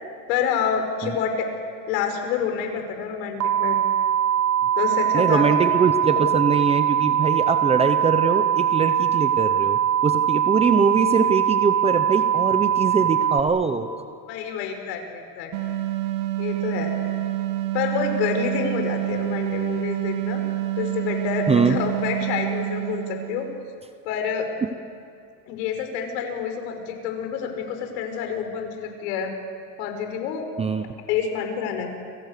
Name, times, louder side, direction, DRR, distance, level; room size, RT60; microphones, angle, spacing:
voice 1, 0.3-1.5 1.9-3.8 4.8-5.5 14.3-15.5 16.4-16.9 17.7-20.4 20.8-23.5 24.0-24.5 25.5-29.3 29.8-30.4 31.1-31.9, left 7 dB, 75° left, 4 dB, 5.6 m, -28 dB
sound 1, 3.4-13.4, right 10 dB, 30° right, 1.3 m, -21 dB
voice 2, 5.1-13.9 21.5-21.8 30.6-30.9, right 5 dB, 15° right, 9 dB, 0.7 m, -22 dB
Fantasy G Low Long, 15.5-23.6, right 14 dB, 80° right, 2.3 m, -27 dB
30.0 x 25.5 x 6.7 m, 2.4 s
cardioid pair, 160°, 50 cm